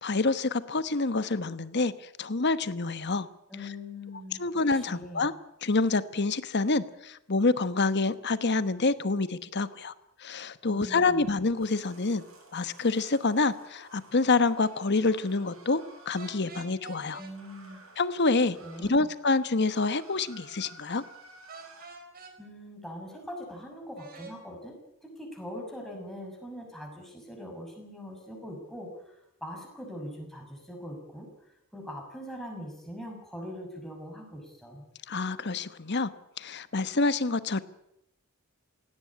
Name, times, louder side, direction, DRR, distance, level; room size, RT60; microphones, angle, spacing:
voice 1, 0.0-1.9 2.2-3.3 4.4-5.3 5.6-9.9 10.2-12.2 12.5-17.2 18.0-21.0 35.1-36.1 36.4-37.6, left 3 dB, 55° left, 13 dB, 1.1 m, -27 dB
voice 2, 3.5-4.4 4.7-5.3 10.7-11.3 17.2-17.8 18.6-19.1 22.4-28.9 29.4-31.3 31.7-34.8, equal, ahead, 1 dB, 6.3 m, -42 dB
sound 1, 11.6-16.5 17.3-19.0 19.3-21.9, right 2 dB, 80° right, 7.9 m, -54 dB
sound 2, 16.2-17.3 21.5-22.3 24.0-24.4, right 4 dB, 45° right, 4.5 m, -46 dB
17.5 x 16.5 x 9.8 m, 0.82 s
head